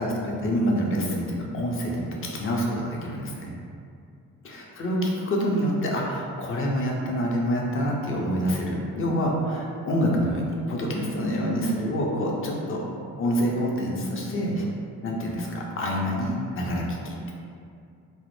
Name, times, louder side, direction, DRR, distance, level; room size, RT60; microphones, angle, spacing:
voice 1, 0.0-3.5 4.4-12.8 13.2-14.7 15.0-17.3, equal, 35° left, -2 dB, 0.6 m, -27 dB
2.0 x 2.0 x 3.0 m, 2.4 s
supercardioid pair, 60°, 36 cm